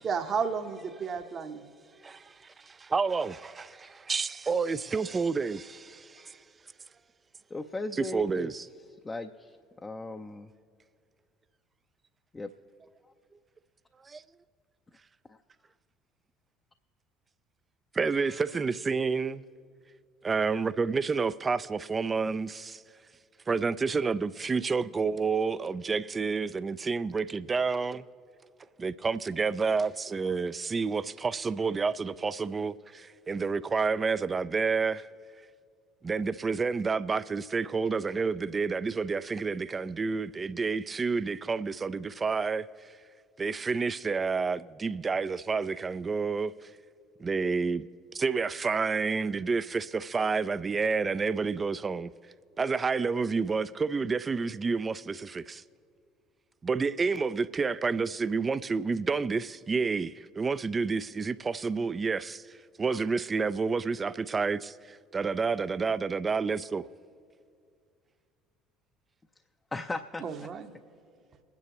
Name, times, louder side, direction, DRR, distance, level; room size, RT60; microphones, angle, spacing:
voice 1, 0.0-1.6 70.2-70.7, right 6 dB, 45° right, 0.9 m, -32 dB
voice 2, 2.0-6.4 7.9-8.7 14.0-14.2 17.9-19.4 20.2-22.8 23.5-28.1 28.8-35.1 36.0-42.9 43.4-46.7 47.2-47.9 48.1-52.1 52.6-55.6 56.6-66.9, right 4 dB, 30° right, 0.4 m, -29 dB
voice 3, 7.5-8.5 9.0-10.5 12.3-12.5 15.3-15.4 18.1-18.4 69.7-70.2, left 2 dB, 20° left, 0.5 m, -37 dB
22.5 x 9.6 x 3.0 m
hypercardioid pair, 65°, 0 cm